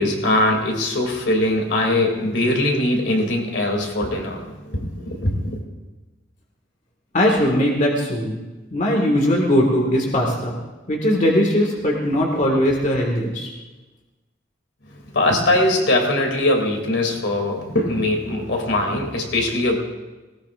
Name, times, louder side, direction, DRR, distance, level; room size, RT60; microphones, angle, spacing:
voice 1, 0.0-5.6 15.1-19.8, left 1 dB, 75° left, 2 dB, 2.7 m, -21 dB
voice 2, 7.1-8.4 8.7-10.6 10.9-13.5, equal, 45° left, 0 dB, 1.9 m, -19 dB
19.0 x 18.0 x 2.5 m, 1.2 s
head